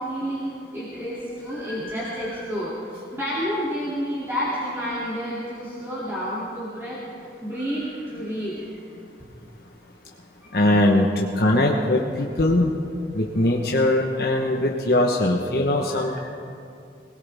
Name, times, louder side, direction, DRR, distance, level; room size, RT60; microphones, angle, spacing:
voice 1, 0.0-7.0 7.4-8.7 9.2-9.3 10.4-10.6 13.4-13.5 15.9-16.2, equal, 15° right, -10 dB, 2.7 m, -30 dB
voice 2, 10.5-12.7 13.1-16.2, left 1 dB, 60° left, -1 dB, 1.2 m, -21 dB
21.0 x 19.5 x 3.6 m, 2.5 s
head